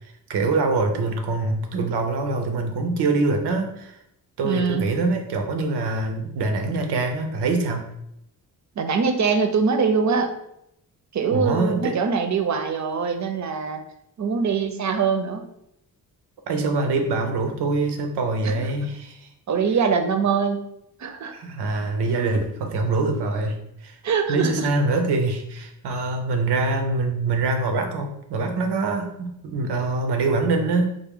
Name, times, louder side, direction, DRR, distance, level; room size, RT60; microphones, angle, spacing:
voice 1, 0.3-3.9 4.4-7.8 11.3-12.0 16.5-19.2 21.3-23.6 23.8-23.9 24.3-30.9, right 3 dB, 85° right, 4 dB, 0.7 m, -24 dB
voice 2, 4.4-4.8 8.8-10.3 11.1-13.8 14.2-15.4 18.4-18.7 19.5-20.7 21.0-21.3 24.0-24.7, right 5 dB, 45° right, 7 dB, 0.6 m, -23 dB
3.5 x 2.1 x 3.5 m, 0.78 s
cardioid pair, 60°, 39 cm